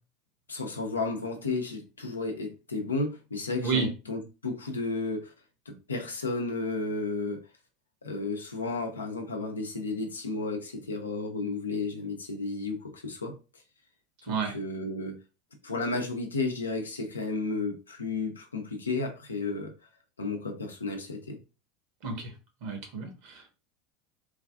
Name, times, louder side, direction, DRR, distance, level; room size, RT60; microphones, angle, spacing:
voice 1, 0.5-5.3 5.7-7.4 8.0-13.3 14.2-15.2 15.6-19.7 20.2-21.4, left 3 dB, 85° left, 0.6 m, -33 dB
voice 2, 22.0-22.3 22.6-23.5, right 5 dB, 55° right, 0.9 m, -31 dB
3.2 x 2.4 x 2.2 m
figure-of-eight pair, 80°, 0 cm